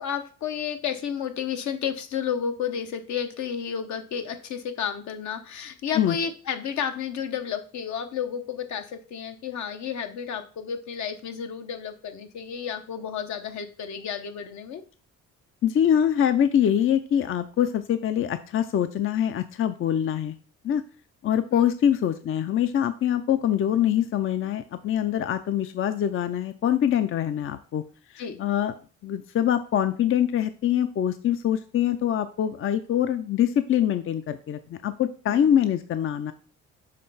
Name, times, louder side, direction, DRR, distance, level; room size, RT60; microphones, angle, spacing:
voice 1, 0.0-14.8 21.5-21.7 28.2-28.4 35.3-35.5, left 7 dB, 70° left, 7 dB, 0.9 m, -32 dB
voice 2, 15.6-20.3 20.6-20.8 21.2-27.8 28.1-28.7 29.0-36.3, left 10 dB, 45° left, 11 dB, 0.5 m, -24 dB
6.6 x 3.2 x 5.5 m, 0.39 s
cardioid pair, 90°, 30 cm